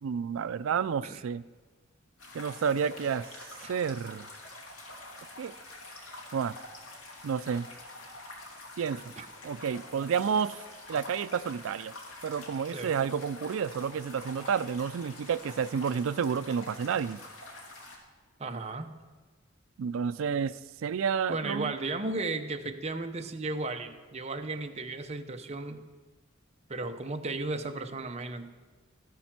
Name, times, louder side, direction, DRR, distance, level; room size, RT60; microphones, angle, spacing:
voice 1, 0.0-1.4 2.3-3.3 3.7-4.3 5.4-5.5 6.3-6.6 7.2-7.7 8.8-9.0 9.4-10.6 10.9-11.9 12.2-17.2 19.8-21.7, right 7 dB, 80° right, 14 dB, 0.4 m, -30 dB
sound 1, 2.2-18.0, left 2 dB, 80° left, 2.5 m, -47 dB
voice 2, 18.4-19.0 21.3-25.8 26.7-28.5, right 2 dB, 35° right, 6 dB, 0.8 m, -35 dB
13.5 x 9.4 x 6.0 m, 1.3 s
head